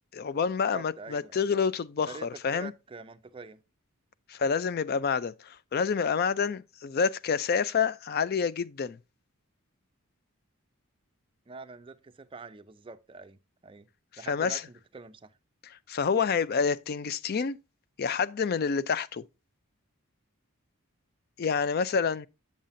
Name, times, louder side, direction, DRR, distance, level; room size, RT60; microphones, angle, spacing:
voice 1, 0.1-2.7 4.3-9.0 14.3-14.6 15.9-17.6 18.0-19.2 21.4-22.3, left 6 dB, 45° left, 0.4 m, -28 dB
voice 2, 0.7-1.5 2.1-3.6 11.5-13.9 14.2-15.4, right 3 dB, 25° right, 0.4 m, -45 dB
7.4 x 7.3 x 2.5 m
head